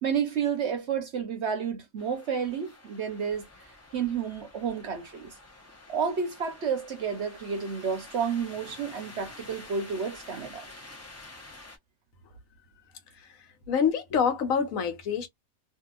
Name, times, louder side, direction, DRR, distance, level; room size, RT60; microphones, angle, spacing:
voice 1, 0.0-3.5 3.9-5.3 5.9-10.7, right 6 dB, 60° right, 0.9 m, -30 dB
sound 1, 2.0-11.8, left 2 dB, 15° left, 0.6 m, -49 dB
voice 2, 13.1-15.3, left 7 dB, 70° left, 1.2 m, -27 dB
2.7 x 2.7 x 2.4 m
omnidirectional pair, 1.5 m